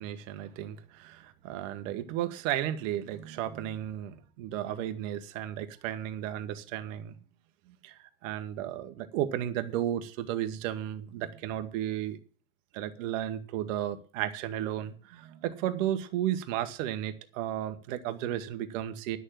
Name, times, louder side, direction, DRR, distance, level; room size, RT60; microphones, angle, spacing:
voice 1, 0.0-7.1 7.8-7.9 8.2-12.2 12.7-19.2, right 12 dB, 70° right, 1.5 m, -34 dB
11.0 x 6.6 x 7.5 m
hypercardioid pair, 80°, 41 cm